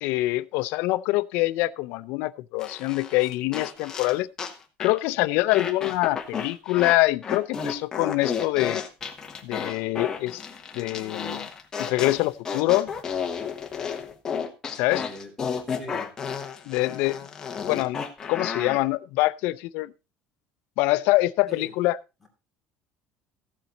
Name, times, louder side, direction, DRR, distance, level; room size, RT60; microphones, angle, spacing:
voice 1, 0.0-4.3 4.8-8.8 9.4-10.4 10.7-11.5 11.8-12.9 14.8-15.0 16.7-17.2 17.7-18.0 18.3-19.9 20.8-22.0, left 19 dB, 60° left, 0.6 m, -24 dB
sound 1, 2.6-4.5 4.8-5.0 5.5-7.0 7.2-18.8, left 6 dB, 20° left, 1.2 m, -32 dB
voice 2, 15.0-15.3 15.7-16.1 21.5-21.7, left 2 dB, ahead, 2.6 m, -41 dB
15.0 x 7.4 x 3.9 m
cardioid pair, 180°, 3 cm